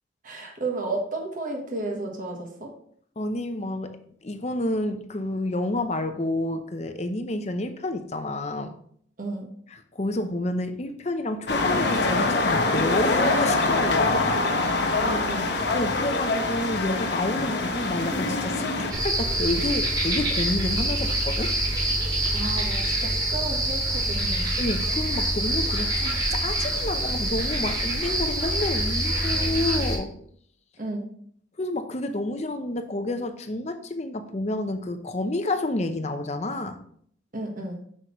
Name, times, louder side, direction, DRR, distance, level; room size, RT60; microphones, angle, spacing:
voice 1, 0.2-2.7 9.2-9.5 15.0-15.5 22.3-24.5 30.8-31.0 37.3-37.8, right 2 dB, 45° right, 1 dB, 1.2 m, -32 dB
voice 2, 3.2-4.0 4.2-8.7 9.9-14.5 15.7-21.6 24.6-30.1 31.6-36.8, left 2 dB, 35° left, 8 dB, 0.7 m, -29 dB
sound 1, 11.5-18.9, left 2 dB, 60° left, 1.0 m, -24 dB
sound 2, 18.9-30.0, right 1 dB, 20° right, 2.5 m, -26 dB
7.8 x 6.2 x 3.1 m, 0.63 s
head